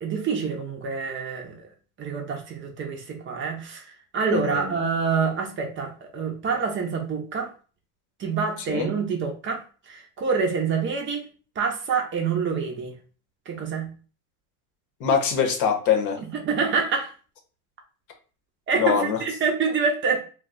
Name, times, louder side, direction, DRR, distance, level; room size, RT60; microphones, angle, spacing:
voice 1, 0.0-1.5 2.0-3.8 4.1-7.5 8.2-9.6 9.9-11.2 11.6-12.9 13.5-13.9 16.4-17.1 18.7-20.2, right 5 dB, 25° right, 2 dB, 0.7 m, -26 dB
voice 2, 4.3-4.7 8.7-8.9 15.0-16.2 18.8-19.2, left 7 dB, 45° left, 4 dB, 0.9 m, -23 dB
2.3 x 2.2 x 3.9 m, 0.38 s
hypercardioid pair, 110°, 44 cm